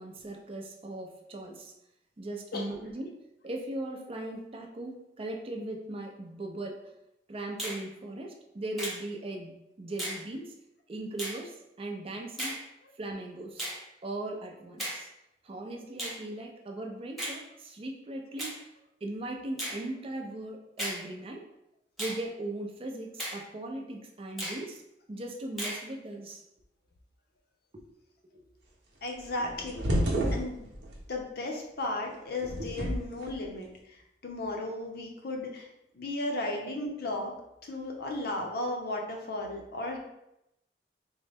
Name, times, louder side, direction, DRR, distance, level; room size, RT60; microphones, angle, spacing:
voice 1, 0.0-1.7 2.2-3.1 3.4-6.8 7.3-10.5 10.9-12.6 13.0-13.7 14.0-15.1 15.4-18.7 19.0-21.4 22.0-24.8 25.1-26.4 27.7-27.8 28.3-28.5 36.6-36.7, right 1 dB, 30° right, 1 dB, 0.5 m, -38 dB
Finger snapping, 7.6-7.8 8.8-9.0 10.0-10.2 11.2-11.4 12.4-12.6 13.6-13.8 14.8-15.0 16.0-16.2 17.2-17.4 18.4-18.6 19.6-19.8 20.8-21.0 22.0-22.2 23.2-23.4 24.4-24.6 25.6-25.8, right 1 dB, ahead, 1.0 m, -35 dB
voice 2, 29.0-29.9 30.3-30.7 31.1-35.7 35.9-37.3 37.6-40.0, left 2 dB, 60° left, 1 dB, 0.6 m, -35 dB
sound 1, 29.1-31.0 32.3-33.3, right 1 dB, 90° right, 0.8 m, -30 dB
3.8 x 2.1 x 3.3 m, 0.85 s
head